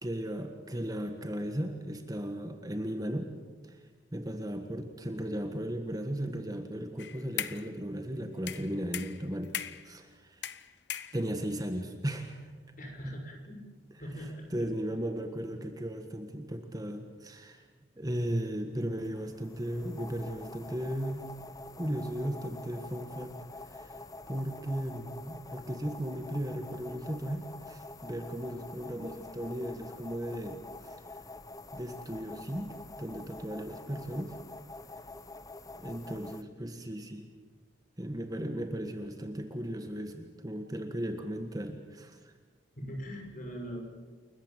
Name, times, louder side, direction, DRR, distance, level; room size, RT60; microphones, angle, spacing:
voice 1, 0.0-3.3 3.6-3.8 4.1-9.5 9.8-10.5 11.1-12.5 14.5-17.6 18.0-21.3 21.7-23.4 23.7-24.0 24.3-31.0 31.7-34.4 35.7-37.3 38.0-42.3, equal, 20° right, 6 dB, 1.6 m, -36 dB
sound 1, 7.0-7.7 8.5-9.9 10.4-11.5, left 10 dB, 60° left, 0.9 m, -38 dB
voice 2, 12.8-13.6 14.0-14.5 42.8-43.8, equal, 45° left, 2 dB, 6.2 m, -40 dB
sound 2, 19.0-36.4, left 2 dB, 20° left, 0.8 m, -47 dB
29.0 x 14.5 x 9.1 m, 1.4 s
head